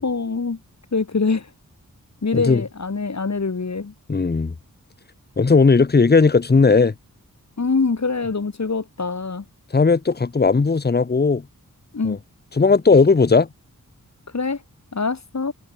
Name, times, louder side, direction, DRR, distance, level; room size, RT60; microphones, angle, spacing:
voice 1, 0.0-0.6 0.9-1.5 2.2-3.9 7.6-9.4 11.9-12.2 14.3-14.6 14.9-15.5, left 4 dB, 55° left, 4.0 m, -24 dB
voice 2, 4.1-4.5 5.4-6.9 9.7-11.4 12.0-12.2 12.5-13.5, left 4 dB, 30° left, 1.0 m, -16 dB
wide cardioid pair, 100°, 34 cm